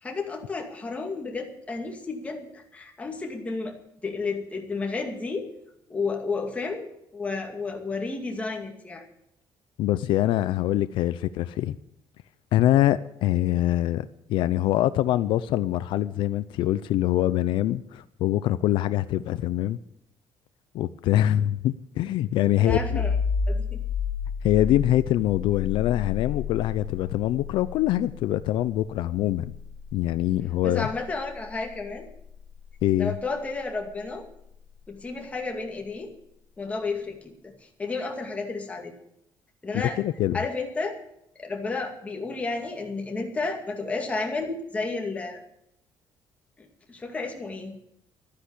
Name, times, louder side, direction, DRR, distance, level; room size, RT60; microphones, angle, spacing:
voice 1, 0.0-3.8 4.0-5.5 5.9-9.1 22.6-23.2 23.5-23.8 30.6-32.1 33.0-34.3 34.9-36.1 36.6-38.9 39.6-40.0 40.3-41.0 41.4-45.4 46.6-47.8, left 3 dB, 15° left, 2.3 m, -32 dB
voice 2, 9.8-11.8 12.5-19.8 20.7-23.0 24.4-29.5 29.9-30.9 32.8-33.1 39.7-40.4, left 13 dB, 80° left, 0.6 m, -24 dB
sound 1, 22.7-34.1, left 6 dB, 60° left, 3.6 m, -32 dB
12.5 x 10.0 x 8.3 m
cardioid pair, 170°, 8 cm